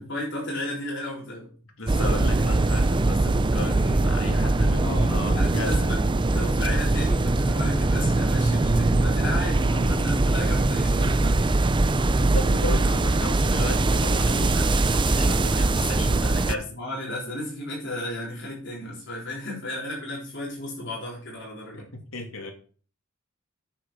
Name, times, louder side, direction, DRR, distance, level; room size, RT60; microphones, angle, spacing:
voice 1, 0.0-1.5 4.8-6.0 6.3-11.7 16.7-21.8, left 1 dB, 60° left, 4.1 m, -34 dB
voice 2, 1.8-5.9 12.0-16.8 21.7-21.8 22.1-22.5, left 2 dB, 75° left, 2.5 m, -34 dB
sound 1, 1.9-16.6, right 2 dB, 25° right, 0.5 m, -22 dB
8.9 x 7.4 x 5.6 m
head